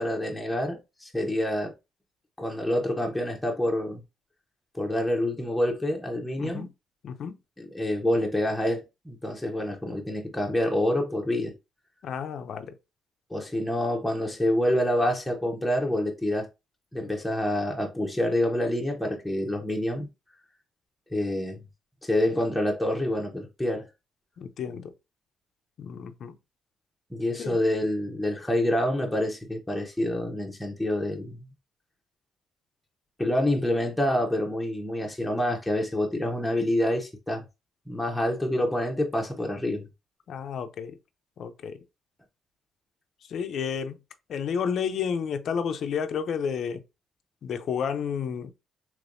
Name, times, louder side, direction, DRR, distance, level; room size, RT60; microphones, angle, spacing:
voice 1, 0.0-1.7 2.4-4.0 4.7-6.7 7.6-11.5 13.3-16.5 16.9-20.1 21.1-21.6 22.0-23.9 27.1-31.5 33.2-37.4 37.9-39.9, left 1 dB, 5° left, 0.8 m, -27 dB
voice 2, 6.4-6.7 7.0-7.4 12.0-12.7 24.4-24.9 25.8-26.4 27.4-27.6 40.3-41.0 41.4-41.8 43.3-44.0 44.3-46.8 47.4-48.5, left 7 dB, 65° left, 0.4 m, -31 dB
3.3 x 3.0 x 2.5 m
cardioid pair, 90°, 0 cm